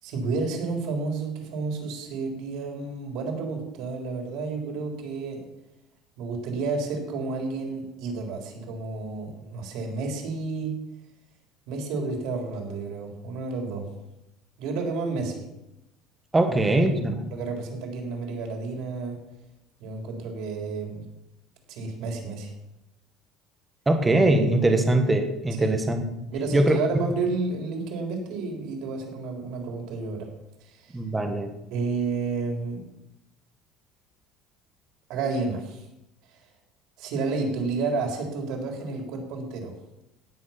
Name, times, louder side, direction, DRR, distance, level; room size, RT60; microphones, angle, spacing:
voice 1, 0.0-5.5 6.2-10.7 11.7-13.9 14.6-15.5 16.5-16.6 17.3-19.2 19.8-21.0 21.7-22.5 25.6-25.8 26.3-30.3 30.6-31.0 31.7-32.8 35.1-35.8 37.0-39.8, right 4 dB, 65° right, 3 dB, 3.5 m, -31 dB
voice 2, 16.3-17.2 23.9-26.0 26.5-26.8 30.9-31.5, right 1 dB, 10° right, 6 dB, 1.5 m, -22 dB
17.5 x 7.6 x 5.8 m, 0.89 s
cardioid pair, 165°, 0 cm